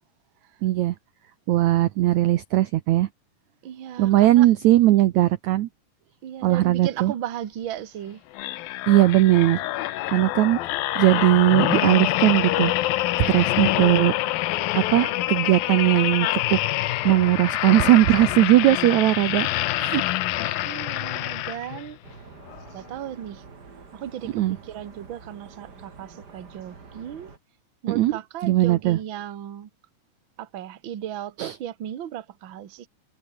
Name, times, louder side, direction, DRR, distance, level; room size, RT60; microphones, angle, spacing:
voice 1, 0.6-1.0 1.5-3.1 4.0-5.7 6.4-7.1 8.9-10.6 11.0-12.7 13.3-14.1 14.8-16.6 17.0-19.5 19.8-20.0 20.4-20.7 24.3-24.6 27.9-28.1 28.4-29.0 31.4-31.5, right 15 dB, 75° right, 1.8 m, -19 dB
voice 2, 3.6-4.5 6.2-8.2 20.6-22.0 22.6-23.4 23.9-27.3 27.8-29.7 30.4-32.9, right 10 dB, 50° right, 1.6 m, -36 dB
sound 1, 8.3-21.9 22.5-22.7, left 16 dB, 80° left, 2.7 m, -26 dB
sound 2, 22.0-27.4, right 4 dB, 30° right, 3.1 m, -47 dB
omnidirectional pair, 4.2 m